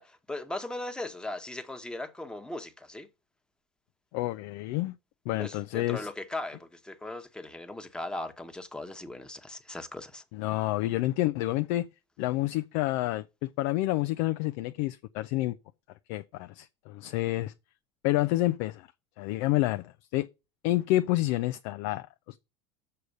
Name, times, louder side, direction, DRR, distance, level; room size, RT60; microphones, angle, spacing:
voice 1, 0.0-3.1 5.4-10.2, left 2 dB, 5° left, 1.2 m, -38 dB
voice 2, 4.1-4.9 5.3-6.1 10.3-11.9 12.2-15.6 16.1-17.5 18.0-18.9 19.2-20.3 20.6-22.4, left 17 dB, 60° left, 0.5 m, -29 dB
6.8 x 4.8 x 6.5 m
hypercardioid pair, 80°, 15 cm